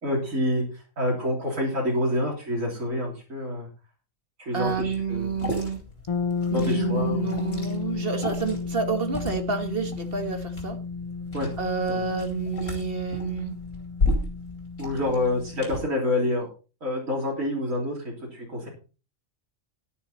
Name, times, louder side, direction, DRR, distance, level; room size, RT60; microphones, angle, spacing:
voice 1, 0.0-3.7 4.4-5.5 6.5-7.3 11.3-11.5 11.9-12.0 14.8-16.5 16.8-18.7, left 1 dB, 80° right, -3 dB, 3.9 m, -27 dB
voice 2, 4.5-5.8 6.5-10.8 11.6-13.6, right 5 dB, 45° right, 7 dB, 1.8 m, -29 dB
Liquid, 4.7-15.8, left 2 dB, 70° left, 4.3 m, -35 dB
sound 1, 6.1-15.9, left 4 dB, 35° left, 0.6 m, -33 dB
12.5 x 10.0 x 4.2 m, 0.34 s
omnidirectional pair, 1.4 m